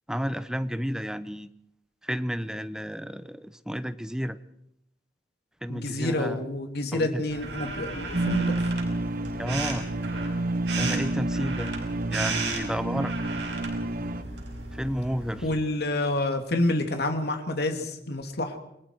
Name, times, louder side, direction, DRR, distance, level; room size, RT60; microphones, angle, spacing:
voice 1, 0.1-1.5 2.0-4.4 5.6-6.4 6.9-7.2 9.3-9.8 10.8-11.7 12.1-13.1 14.7-15.5, equal, 5° right, 13 dB, 0.8 m, -31 dB
voice 2, 5.7-8.6 15.4-18.6, left 2 dB, 65° left, 5 dB, 2.7 m, -28 dB
sound 1, 7.3-15.6, right 3 dB, 85° right, 5.8 m, -35 dB
sound 2, 8.1-14.2, right 1 dB, 55° right, 1.1 m, -29 dB
28.5 x 20.5 x 4.7 m, 0.78 s
head